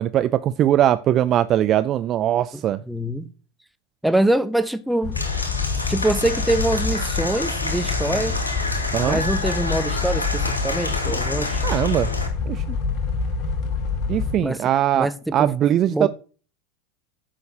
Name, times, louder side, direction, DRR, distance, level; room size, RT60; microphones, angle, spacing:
voice 1, 0.0-2.8 8.9-9.2 11.6-12.1 12.5-12.6 14.1-16.1, right 11 dB, 40° right, 0.4 m, -20 dB
voice 2, 2.5-3.3 4.0-5.2 5.9-8.4 9.0-11.6 14.4-14.7 14.9-15.5 15.9-16.1, right 1 dB, 5° right, 0.9 m, -24 dB
sound 1, 5.0-14.4, left 4 dB, 50° left, 1.8 m, -26 dB
Applause / Crowd, 5.1-12.3, left 2 dB, 90° left, 2.0 m, -29 dB
14.5 x 5.8 x 2.9 m
figure-of-eight pair, 80°, 0 cm